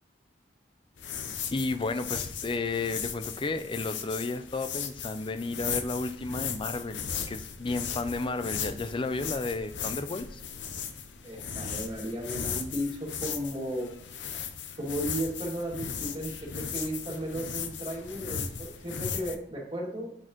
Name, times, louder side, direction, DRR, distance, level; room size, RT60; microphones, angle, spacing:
sound 1, 1.0-19.4, left 7 dB, 80° left, 0.7 m, -37 dB
voice 1, 1.5-10.4, left 3 dB, 30° left, 11 dB, 0.5 m, -32 dB
voice 2, 11.2-13.9 14.7-20.1, equal, 30° right, -4 dB, 2.4 m, -35 dB
8.6 x 6.3 x 3.0 m, 0.67 s
head